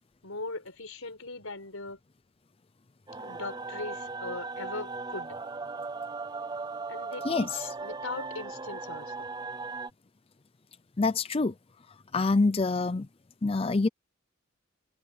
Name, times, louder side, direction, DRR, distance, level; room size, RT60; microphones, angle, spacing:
voice 1, 0.2-2.0 3.2-5.4 6.9-9.3, left 3 dB, 75° left, 5.1 m, -40 dB
sound 1, 3.1-9.9, right 4 dB, 20° right, 0.6 m, -38 dB
voice 2, 11.0-11.5 12.1-13.1 13.4-13.9, left 3 dB, 25° left, 0.5 m, -25 dB
head